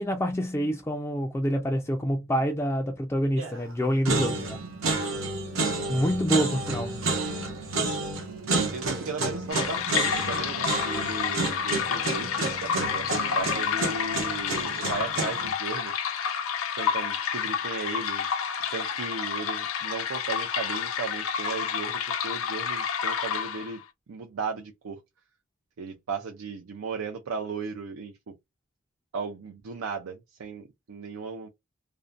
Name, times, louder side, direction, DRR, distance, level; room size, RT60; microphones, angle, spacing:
voice 1, 0.0-4.6 5.9-7.0, equal, 10° left, 0.3 m, -27 dB
sound 1, 3.4-3.7 4.1-15.5, right 3 dB, 70° right, 0.8 m, -30 dB
voice 2, 8.5-15.9 16.7-18.3 18.7-23.8 24.1-25.0 25.8-28.3 29.1-31.5, right 4 dB, 90° right, 0.5 m, -36 dB
sound 2, 9.5-23.8, left 7 dB, 80° left, 0.5 m, -29 dB
2.5 x 2.1 x 2.4 m
head